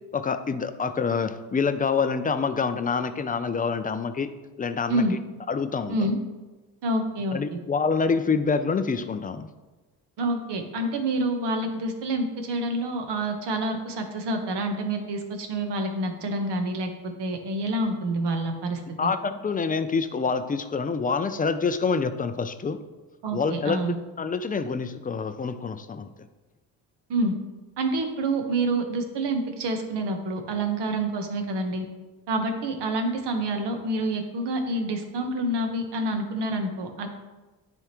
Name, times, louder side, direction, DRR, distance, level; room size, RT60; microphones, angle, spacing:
voice 1, 0.1-4.3 4.6-5.1 5.5-6.1 7.3-9.5 19.0-22.8 23.3-23.8 24.2-26.1, left 5 dB, 20° left, 10 dB, 0.3 m, -26 dB
voice 2, 6.8-7.6 10.2-18.8 23.2-23.9 27.1-27.3 27.8-31.8 32.3-37.1, right 1 dB, 60° right, 5 dB, 1.2 m, -27 dB
9.9 x 3.6 x 3.0 m, 1.2 s
supercardioid pair, 75°, 46 cm